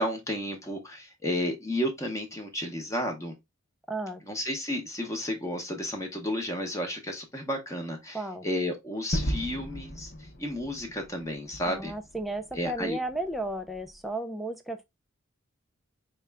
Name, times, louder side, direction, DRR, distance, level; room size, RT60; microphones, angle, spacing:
voice 1, 0.0-3.3 4.2-11.9 12.5-13.0, left 1 dB, 15° left, 0.8 m, -32 dB
voice 2, 3.9-4.2 8.1-8.5 11.7-14.8, right 2 dB, ahead, 0.3 m, -34 dB
Gunshot gunfire / Fireworks / Boom, 9.1-13.9, equal, 50° left, 0.7 m, -36 dB
4.8 x 2.2 x 3.3 m
head